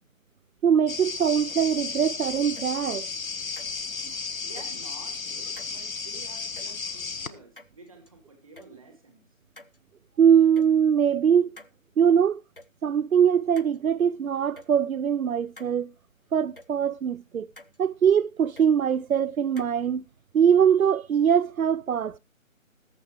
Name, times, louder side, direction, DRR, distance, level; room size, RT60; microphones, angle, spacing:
voice 1, 0.6-3.1 10.2-11.5 12.0-12.4 12.8-15.9 16.3-17.5 17.8-20.0 20.3-22.2, right 8 dB, 90° right, 0.6 m, -22 dB
sound 1, 0.9-7.3, left 4 dB, 80° left, 1.2 m, -34 dB
sound 2, 2.6-2.7 3.6-3.8 4.6-4.7 5.6-5.7 6.6-6.7 7.6-8.1 8.6-8.7 9.6-9.8 10.6-10.7 11.6-11.7 12.6-12.7 13.6-13.8 14.6-14.7 15.6-15.7 16.6-16.7 17.6-17.8 18.6-18.7 19.6-19.7, left 2 dB, 45° left, 0.5 m, -48 dB
voice 2, 4.2-9.2, right 2 dB, 25° right, 2.7 m, -50 dB
20.0 x 6.8 x 3.2 m
figure-of-eight pair, 175°, 40 cm